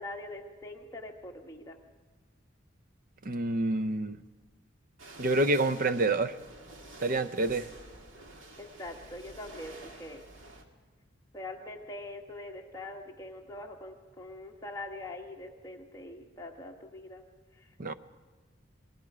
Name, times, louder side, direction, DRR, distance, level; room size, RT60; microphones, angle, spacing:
voice 1, 0.0-1.8 8.6-10.2 11.3-17.2 17.6-17.9, left 2 dB, 20° left, 0 dB, 1.5 m, -43 dB
voice 2, 3.2-4.2 5.2-6.3 7.0-7.7 17.8-17.9, right 2 dB, 45° right, 13 dB, 0.6 m, -27 dB
sound 1, 5.0-10.6, right 2 dB, 80° right, 2.1 m, -49 dB
27.0 x 20.5 x 4.9 m, 1.3 s
head